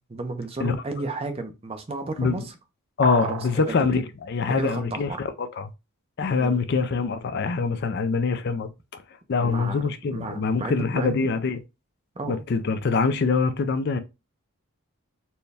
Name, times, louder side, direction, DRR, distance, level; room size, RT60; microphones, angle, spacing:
voice 1, 0.0-2.5 3.2-3.8 4.5-5.2 6.4-6.6 9.4-9.8 10.1-11.3 12.2-12.8, right 2 dB, 25° right, 0.5 m, -33 dB
voice 2, 3.0-5.7 6.2-9.0 9.3-11.6 12.3-14.0, left 4 dB, 50° left, 0.4 m, -24 dB
sound 1, 3.0-3.6, right 5 dB, 85° right, 0.6 m, -31 dB
4.3 x 2.2 x 3.4 m
head